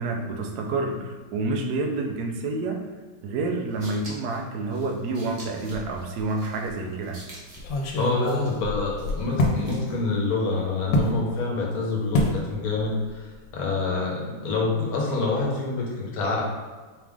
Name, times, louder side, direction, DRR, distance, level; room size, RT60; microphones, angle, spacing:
voice 1, 0.0-2.8 3.2-7.2, right 3 dB, 70° right, 2 dB, 1.1 m, -28 dB
sound 1, 3.5-10.1, right 1 dB, 40° right, 0.6 m, -48 dB
sound 2, 5.7-6.3 6.7-6.8 7.6-9.6 10.9-11.2 12.1-12.4 12.7-13.1 13.3-13.5, left 2 dB, 90° left, 1.4 m, -25 dB
voice 2, 8.0-16.4, left 3 dB, 60° left, -2 dB, 1.3 m, -27 dB
4.9 x 2.5 x 3.5 m, 1.4 s
omnidirectional pair, 2.0 m